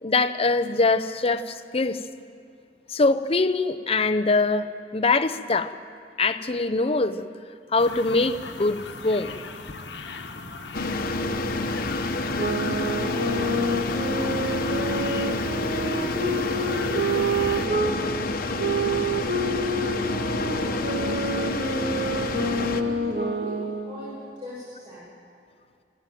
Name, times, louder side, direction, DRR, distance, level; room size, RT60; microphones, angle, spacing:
voice 1, 0.0-2.0 2.9-5.7 6.2-7.2 7.7-8.8 9.0-9.3, left 3 dB, 35° left, 11 dB, 0.7 m, -23 dB
sound 1, 7.8-17.7, left 4 dB, 80° left, 1.3 m, -38 dB
sound 2, 10.7-22.8, left 2 dB, 55° left, 1.1 m, -28 dB
sound 3, 12.4-17.9 18.6-24.1, right 2 dB, 65° right, 2.0 m, -28 dB
voice 2, 13.1-13.4 14.0-15.1 15.7-19.4 20.2-21.5 22.4-23.6 23.8-24.1 24.4-25.1, left 1 dB, 35° right, -9 dB, 7.0 m, -40 dB
28.0 x 10.5 x 9.2 m, 2.3 s
head